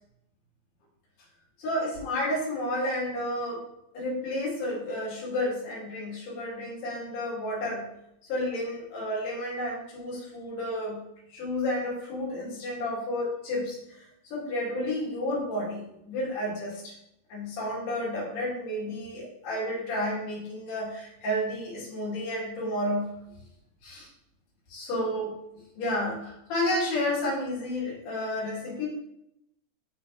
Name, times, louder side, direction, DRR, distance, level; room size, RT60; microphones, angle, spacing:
voice 1, 1.6-3.7 3.9-7.9 8.3-11.0 11.3-16.9 17.3-23.1 23.8-24.1 24.7-25.3 25.8-28.9, left 1 dB, 90° left, -7 dB, 4.7 m, -31 dB
11.5 x 4.0 x 3.0 m, 0.81 s
omnidirectional pair, 4.4 m